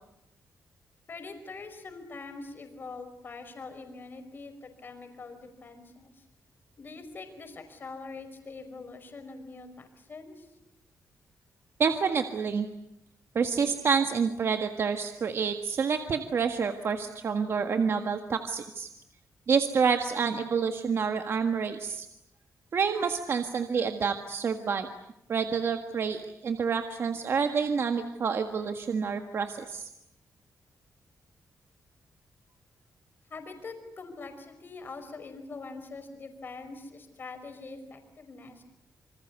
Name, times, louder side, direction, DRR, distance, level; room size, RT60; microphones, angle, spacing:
voice 1, 1.1-6.2 6.8-10.5 33.3-38.6, left 3 dB, 35° left, 7 dB, 5.2 m, -43 dB
voice 2, 11.8-12.7 13.3-18.9 19.5-22.1 22.7-24.9 25.3-29.9, right 6 dB, 45° right, 6 dB, 1.7 m, -28 dB
27.5 x 26.0 x 8.3 m, 0.82 s
wide cardioid pair, 160°, 6 cm